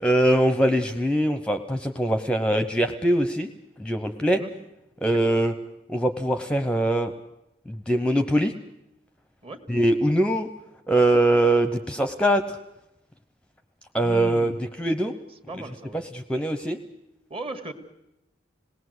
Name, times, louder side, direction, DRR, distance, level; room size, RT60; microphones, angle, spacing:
voice 1, 0.0-3.5 3.8-4.4 5.0-5.5 5.9-7.1 7.7-8.5 9.7-10.5 10.9-12.6 13.9-14.5 14.8-15.1 15.9-16.8, right 1 dB, 5° left, 8 dB, 0.8 m, -22 dB
voice 2, 14.0-14.6 15.5-16.0 17.3-17.7, right 1 dB, 30° right, 6 dB, 2.0 m, -37 dB
27.0 x 19.0 x 8.0 m, 0.90 s
head